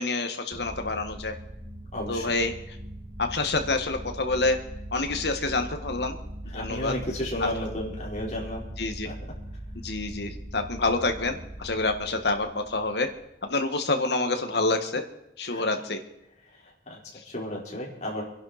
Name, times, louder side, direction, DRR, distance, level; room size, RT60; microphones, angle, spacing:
voice 1, 0.0-1.3 2.1-2.5 3.2-4.6 4.9-6.2 6.5-6.9 7.4-7.5 8.8-9.1 9.7-13.1 13.4-15.0 15.4-16.0 17.1-17.2, left 3 dB, 70° left, 6 dB, 1.7 m, -27 dB
sound 1, 0.5-13.4, equal, 35° right, 2.2 m, -40 dB
voice 2, 1.9-2.3 6.5-8.6 9.0-9.1 15.5-15.6 16.5-18.2, left 1 dB, 40° left, -4 dB, 4.4 m, -33 dB
25.5 x 11.0 x 4.3 m, 0.84 s
head